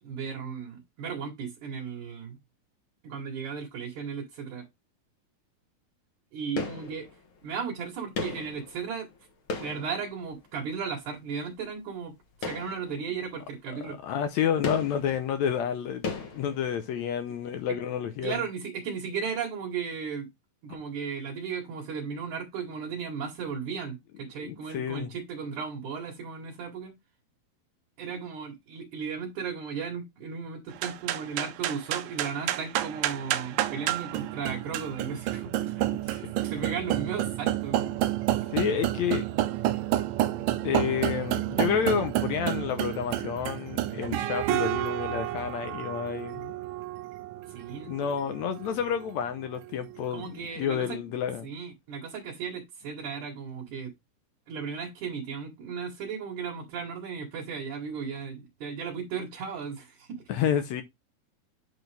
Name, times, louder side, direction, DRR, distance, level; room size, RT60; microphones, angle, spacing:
voice 1, 0.0-2.4 3.0-4.7 6.3-7.1 7.4-9.1 9.6-14.0 17.7-17.8 18.2-20.3 20.6-26.9 28.0-35.8 36.2-37.9 47.5-48.1 50.1-53.9 54.5-60.2, right 6 dB, 60° right, 2.7 m, -36 dB
sound 1, 6.6-7.5 8.1-10.7 12.4-13.4 13.7-13.8 14.6-17.2 17.5-17.6, left 4 dB, 50° left, 1.6 m, -37 dB
voice 2, 13.7-18.4 24.4-25.1 36.1-36.7 38.5-39.3 40.6-46.5 47.9-51.5 60.3-60.8, left 8 dB, 85° left, 1.5 m, -30 dB
sound 2, 30.7-50.2, right 14 dB, 80° right, 2.2 m, -30 dB
8.9 x 4.2 x 3.3 m
omnidirectional pair, 4.2 m